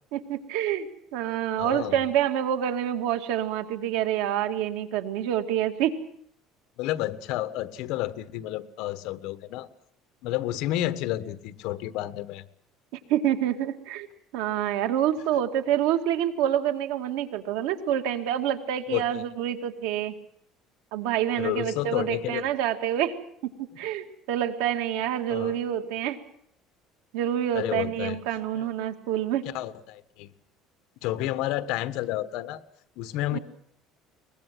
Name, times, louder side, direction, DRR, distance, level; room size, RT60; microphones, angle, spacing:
voice 1, 0.1-0.9 1.1-5.9 13.1-14.1 14.3-20.1 20.9-23.1 23.4-26.2 27.1-29.4 33.3-33.4, right 11 dB, 90° right, 7 dB, 2.3 m, -27 dB
voice 2, 1.6-2.0 6.8-9.7 10.2-12.4 18.9-19.2 21.3-22.5 25.3-25.6 27.5-28.2 28.5-28.7 29.4-30.3 31.0-32.6 33.0-33.4, left 14 dB, 65° left, 13 dB, 1.3 m, -30 dB
23.0 x 21.0 x 7.7 m, 0.68 s
cardioid pair, 170°, 0 cm